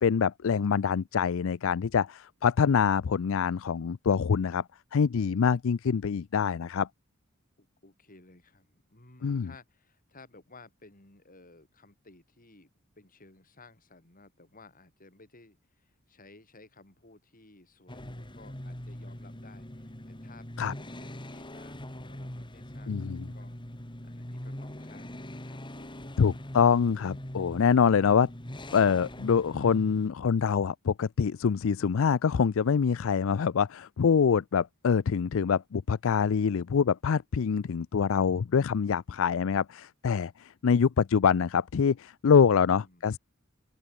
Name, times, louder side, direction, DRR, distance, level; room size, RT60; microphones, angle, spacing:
voice 1, 0.0-4.6 4.9-6.9 9.2-9.5 20.6-20.7 22.9-23.3 26.2-28.3 28.7-43.2, left 6 dB, 65° left, 0.4 m, -25 dB
voice 2, 7.6-12.7 13.0-23.6 24.0-26.2 42.5-43.1, left 3 dB, 40° left, 5.4 m, -56 dB
sound 1, 17.9-30.1, left 1 dB, 25° left, 2.7 m, -42 dB
open air
head